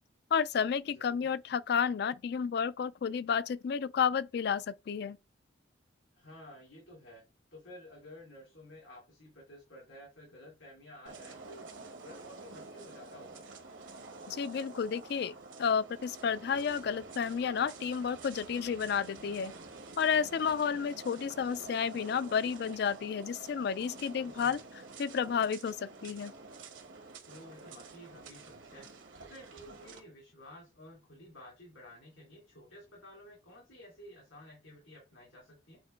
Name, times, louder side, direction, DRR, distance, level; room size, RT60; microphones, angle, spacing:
voice 1, 0.3-5.2 14.3-19.5 20.0-24.6 25.0-26.3, left 6 dB, 55° left, 0.3 m, -31 dB
voice 2, 0.9-1.3 6.1-7.2 7.5-13.4 24.2-24.6 27.2-28.9 29.2-35.8, left 1 dB, 80° left, 2.9 m, -53 dB
sound 1, 11.1-30.0, right 3 dB, 80° right, 1.4 m, -49 dB
7.9 x 2.8 x 4.5 m
head